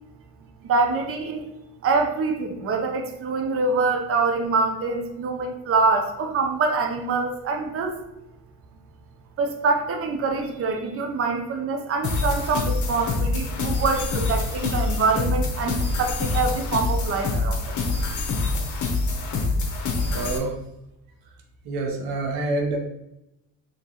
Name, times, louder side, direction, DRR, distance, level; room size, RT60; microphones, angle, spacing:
voice 1, 0.6-1.5 1.8-8.0 9.4-17.8, right 4 dB, 40° right, 4 dB, 0.6 m, -25 dB
sound 1, 12.0-20.4, left 3 dB, 55° left, 1.0 m, -25 dB
voice 2, 20.1-20.6 21.6-22.8, right 2 dB, 90° right, 2 dB, 0.9 m, -27 dB
4.5 x 3.1 x 2.9 m, 0.89 s
cardioid pair, 100°, 34 cm